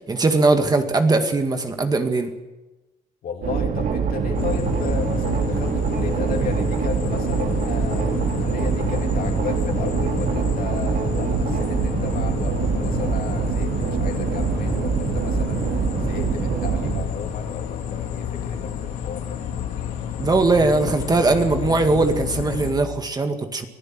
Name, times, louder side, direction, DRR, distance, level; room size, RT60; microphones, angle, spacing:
voice 1, 0.1-2.3 20.2-23.7, right 3 dB, 25° right, 6 dB, 2.0 m, -20 dB
voice 2, 3.2-15.6 16.0-19.4, left 6 dB, 55° left, 3 dB, 3.4 m, -34 dB
sound 1, 3.4-17.0, right 6 dB, 55° right, 2.7 m, -24 dB
sound 2, 4.3-22.7, left 9 dB, 85° left, 3.7 m, -30 dB
23.5 x 14.5 x 7.7 m, 1.1 s
cardioid pair, 110°, 17 cm